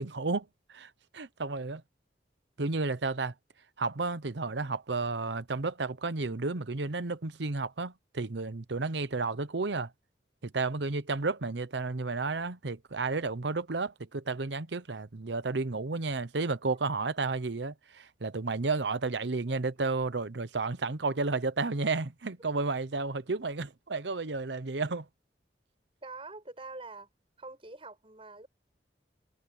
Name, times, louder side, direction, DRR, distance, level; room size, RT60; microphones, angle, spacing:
voice 1, 0.0-1.8 2.6-3.3 3.8-9.9 10.4-25.1, right 3 dB, 80° right, 0.9 m, -32 dB
voice 2, 19.5-19.9 26.0-27.1 27.4-28.5, right 3 dB, 30° right, 6.3 m, -45 dB
head